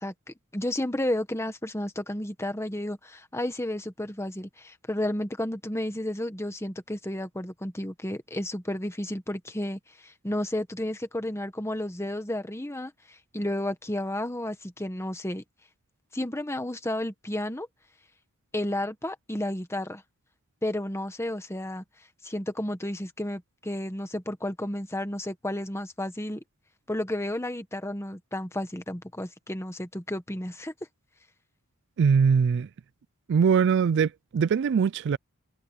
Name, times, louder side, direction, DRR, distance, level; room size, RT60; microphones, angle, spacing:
voice 1, 0.0-15.4 16.1-17.7 18.5-20.0 20.6-21.8 22.2-26.4 26.9-30.7, left 1 dB, 10° left, 1.5 m, -32 dB
voice 2, 32.0-32.7 33.3-35.2, right 6 dB, 50° right, 0.3 m, -22 dB
head